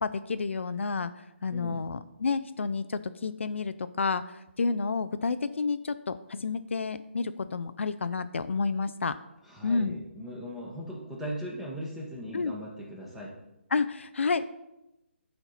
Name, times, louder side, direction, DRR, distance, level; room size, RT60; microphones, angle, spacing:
voice 1, 0.0-9.2 9.6-10.0 12.3-12.6 13.7-14.4, left 4 dB, 75° left, 12 dB, 0.4 m, -30 dB
voice 2, 1.5-1.8 9.4-13.3, equal, 5° right, -4 dB, 1.5 m, -39 dB
11.5 x 4.4 x 4.1 m, 0.91 s
figure-of-eight pair, 150°, 7 cm